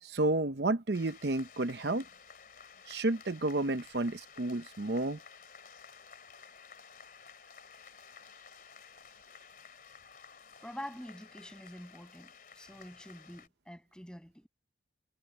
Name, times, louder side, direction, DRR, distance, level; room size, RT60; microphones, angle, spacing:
voice 1, 0.0-2.0 2.9-5.2, right 2 dB, 65° right, 0.8 m, -31 dB
sound 1, 0.9-13.5, left 6 dB, 50° left, 3.4 m, -54 dB
voice 2, 10.6-14.5, equal, 5° left, 6.9 m, -47 dB
head